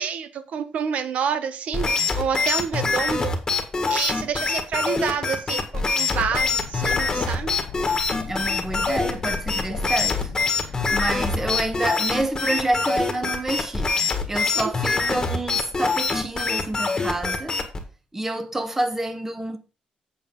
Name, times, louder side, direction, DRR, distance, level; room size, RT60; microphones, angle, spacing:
voice 1, 0.0-3.3 3.9-7.6 14.5-14.7, right 7 dB, 65° right, 1.0 m, -28 dB
sound 1, 1.7-17.8, left 4 dB, 25° left, 1.6 m, -24 dB
sound 2, 6.1-11.7, left 8 dB, 75° left, 0.7 m, -35 dB
voice 2, 8.2-17.6 18.1-19.6, right 2 dB, 15° right, 1.2 m, -28 dB
8.1 x 6.6 x 3.8 m
cardioid pair, 110°, 2 cm